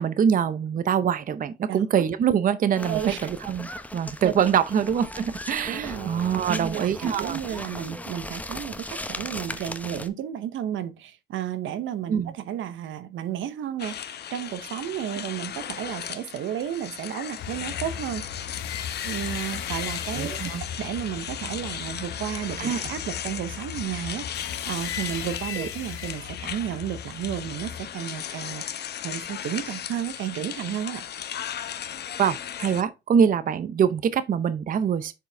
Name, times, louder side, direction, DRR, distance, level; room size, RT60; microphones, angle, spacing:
voice 1, 0.0-7.6 12.1-12.3 20.1-20.6 22.6-22.9 25.6-25.7 32.2-35.1, right 8 dB, 45° right, 0.5 m, -24 dB
voice 2, 1.7-2.0 2.9-3.3 4.2-4.3 5.7-6.1 6.5-18.3 19.0-20.3 20.6-24.3 24.6-31.0, right 10 dB, 80° right, 0.8 m, -32 dB
sound 1, 2.7-10.1, left 1 dB, 5° left, 0.7 m, -37 dB
sound 2, 13.8-32.8, left 9 dB, 55° left, 0.7 m, -36 dB
sound 3, 17.4-27.9, left 8 dB, 85° left, 1.0 m, -37 dB
7.3 x 4.8 x 3.4 m
cardioid pair, 90°, 20 cm